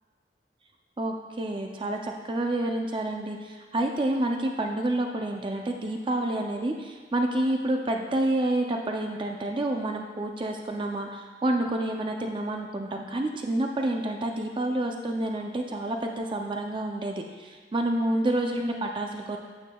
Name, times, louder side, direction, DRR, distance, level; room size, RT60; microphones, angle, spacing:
voice 1, 1.0-19.4, right 1 dB, 30° right, 2 dB, 0.4 m, -29 dB
9.0 x 8.5 x 2.3 m, 1.5 s
head